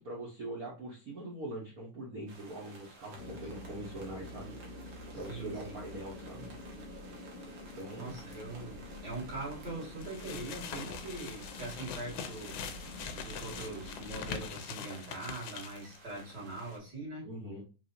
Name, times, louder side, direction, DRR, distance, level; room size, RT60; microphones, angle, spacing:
voice 1, 0.0-4.5 5.1-6.5 7.7-8.1 17.2-17.6, right 1 dB, 85° right, 0.8 m, -42 dB
sound 1, 2.3-16.8, right 2 dB, 60° right, 1.1 m, -55 dB
sound 2, 3.2-14.5, left 1 dB, 5° left, 1.3 m, -47 dB
voice 2, 5.1-5.8 7.9-12.6 13.2-17.3, right 2 dB, 40° right, 2.0 m, -42 dB
sound 3, 10.0-16.0, left 7 dB, 80° left, 1.5 m, -43 dB
4.8 x 3.3 x 2.6 m
omnidirectional pair, 3.4 m